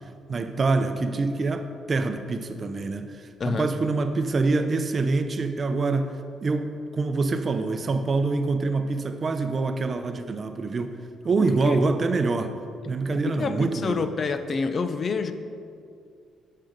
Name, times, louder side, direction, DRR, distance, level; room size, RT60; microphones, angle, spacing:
voice 1, 0.3-11.0 11.2-12.6 12.9-14.1, right 3 dB, 40° right, 8 dB, 0.7 m, -25 dB
voice 2, 3.4-3.7 11.7-11.8 13.1-15.3, left 4 dB, 45° left, 10 dB, 0.6 m, -28 dB
9.5 x 6.7 x 5.1 m, 2.4 s
cardioid pair, 90°, 0 cm